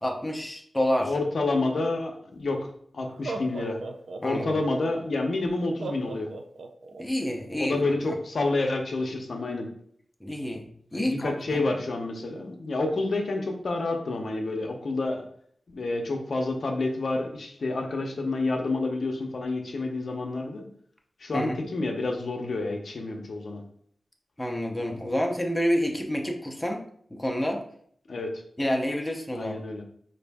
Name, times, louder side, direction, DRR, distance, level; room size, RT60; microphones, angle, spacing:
voice 1, 0.0-1.1 4.2-4.5 7.0-7.8 10.2-10.6 10.9-11.6 21.3-21.6 24.4-26.8 27.1-27.6 28.6-29.6, equal, 10° left, 1 dB, 0.6 m, -28 dB
voice 2, 1.0-2.7 2.9-3.8 4.2-6.3 7.6-9.7 10.9-15.2 15.7-20.6 21.2-23.6 28.1-28.3 29.3-29.8, left 2 dB, 60° left, 2 dB, 0.6 m, -29 dB
Laughter, 2.4-2.5 3.1-4.8 5.8-7.0, right 3 dB, 75° right, 0.4 m, -36 dB
4.9 x 2.6 x 3.4 m, 0.62 s
wide cardioid pair, 130°, 0 cm